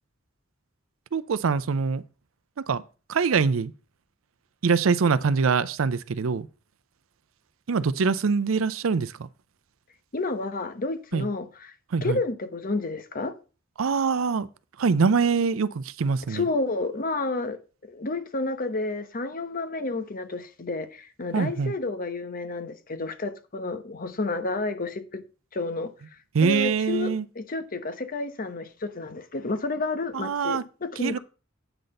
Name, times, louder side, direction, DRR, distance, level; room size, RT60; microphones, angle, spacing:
voice 1, 1.1-2.0 2.6-2.8 3.1-3.7 4.6-6.5 7.7-9.3 11.1-11.3 11.9-12.2 13.8-14.5 14.8-16.5 21.3-21.7 26.3-27.3 30.1-30.6 31.0-31.2, right 5 dB, 85° right, 0.5 m, -24 dB
voice 2, 10.1-11.7 12.0-13.3 16.3-17.6 17.9-25.2 25.5-25.9 26.4-27.1 27.4-31.2, left 3 dB, 45° left, 0.9 m, -30 dB
9.0 x 4.1 x 6.5 m
head